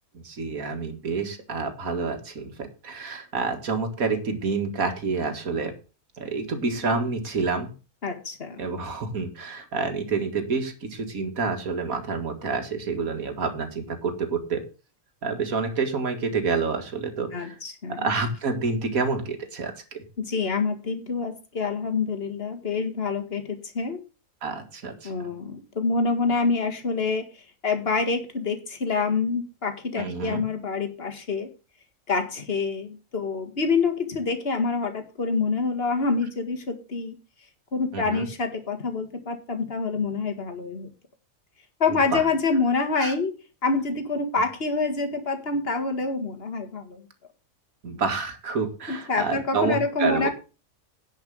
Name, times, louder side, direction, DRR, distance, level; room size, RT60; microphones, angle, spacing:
voice 1, 0.1-5.7 6.2-7.7 8.6-14.7 15.2-17.6 18.0-20.0 24.4-25.1 30.0-30.4 37.9-38.3 42.1-42.3 43.0-43.1 47.8-50.3, right 4 dB, 85° right, 6 dB, 2.3 m, -28 dB
voice 2, 8.0-8.6 17.3-18.1 20.2-24.0 25.0-27.2 27.6-31.5 32.1-37.2 37.7-40.9 41.8-43.3 43.6-47.1 48.9-50.3, left 4 dB, 45° left, 6 dB, 2.0 m, -26 dB
10.5 x 5.4 x 7.7 m, 0.33 s
omnidirectional pair, 1.4 m